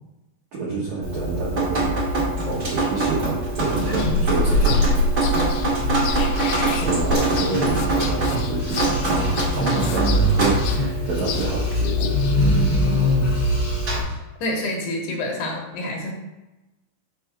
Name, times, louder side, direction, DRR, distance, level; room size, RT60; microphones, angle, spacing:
voice 1, 0.5-2.1 2.4-5.4 6.8-9.2 9.5-12.2, right 3 dB, 75° right, -6 dB, 1.7 m, -28 dB
Drip, 1.0-14.0, right 1 dB, 45° right, 1.2 m, -24 dB
sound 1, 3.7-5.9 6.3-14.1, right 1 dB, 50° left, 1.1 m, -25 dB
sound 2, 4.0-12.4, left 2 dB, 90° left, 2.2 m, -26 dB
voice 2, 14.4-16.1, left 1 dB, 70° left, 0 dB, 2.9 m, -27 dB
6.7 x 3.5 x 5.9 m, 1.0 s
omnidirectional pair, 5.1 m